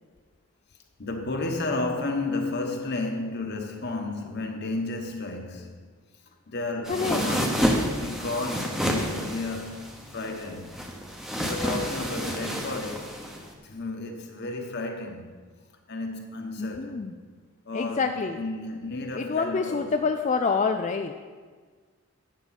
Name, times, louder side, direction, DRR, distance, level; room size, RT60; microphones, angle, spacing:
voice 1, 1.0-5.9 6.5-9.9 10.1-10.8 11.4-13.1 13.6-15.3 15.9-17.1 17.7-19.9, left 2 dB, 50° left, 1.2 m, -32 dB
sound 1, 6.8-13.5, equal, ahead, 0.9 m, -29 dB
voice 2, 6.9-7.3 16.6-17.1 17.7-18.4 19.2-21.1, left 4 dB, 30° left, 0.3 m, -27 dB
11.5 x 8.1 x 4.2 m
head